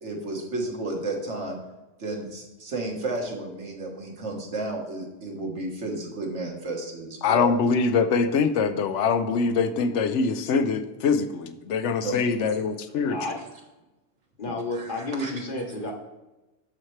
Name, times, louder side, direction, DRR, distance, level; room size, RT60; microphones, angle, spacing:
voice 1, 0.0-1.6 2.0-7.5 12.0-12.2 13.2-13.3 14.5-15.3, right 2 dB, 70° right, 0 dB, 1.8 m, -32 dB
voice 2, 7.2-13.3, left 5 dB, 75° left, 10 dB, 0.9 m, -24 dB
voice 3, 13.0-13.4 14.4-15.9, left 2 dB, 45° left, 2 dB, 1.1 m, -31 dB
12.0 x 4.4 x 3.2 m, 1.1 s
omnidirectional pair, 1.2 m